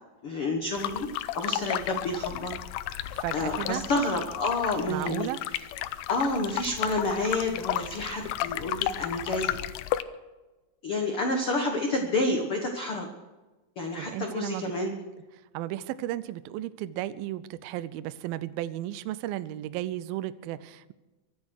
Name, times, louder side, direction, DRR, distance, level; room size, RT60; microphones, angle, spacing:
voice 1, 0.2-2.5 3.3-5.3 6.1-9.6 10.8-13.1 13.8-14.9, left 2 dB, 60° left, 3 dB, 1.4 m, -29 dB
sound 1, 0.7-10.0, left 14 dB, 90° left, 2.8 m, -33 dB
voice 2, 3.1-3.8 4.9-5.4 14.0-14.7 15.5-20.9, right 14 dB, 80° right, 14 dB, 2.2 m, -34 dB
24.0 x 8.4 x 6.4 m, 1.1 s
omnidirectional pair, 4.8 m